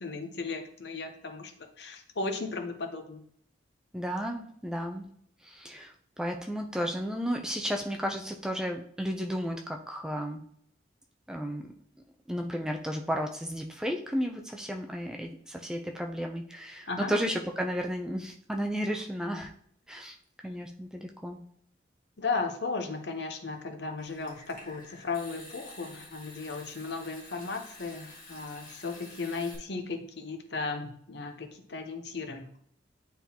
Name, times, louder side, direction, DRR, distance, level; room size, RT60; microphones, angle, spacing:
voice 1, 0.0-1.5 1.8-3.2 16.9-17.1 22.2-32.5, left 4 dB, 60° left, 5 dB, 0.8 m, -35 dB
voice 2, 3.9-5.0 5.4-5.9 6.2-10.4 11.3-11.6 12.3-19.5 19.9-20.2 20.4-21.4, equal, 5° right, 2 dB, 0.4 m, -33 dB
Water tap faucet / Sink (filling or washing) / Trickle dribble, 24.0-29.5, left 2 dB, 45° left, 1.6 m, -49 dB
9.4 x 3.8 x 2.8 m, 0.65 s
head